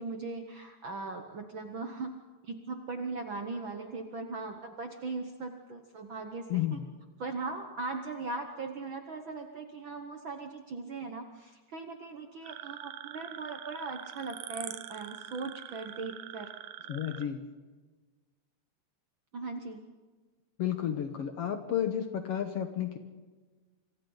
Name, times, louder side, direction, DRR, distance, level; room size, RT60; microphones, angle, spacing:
voice 1, 0.0-2.1 2.4-6.8 7.2-16.5 19.3-19.8, right 3 dB, 55° right, 5 dB, 1.4 m, -39 dB
voice 2, 6.5-6.8 16.9-17.4 20.6-23.0, left 10 dB, 60° left, 7 dB, 1.7 m, -32 dB
sound 1, 12.4-17.3, right 11 dB, 75° right, 1.3 m, -44 dB
27.5 x 24.5 x 4.0 m, 1.3 s
omnidirectional pair, 3.7 m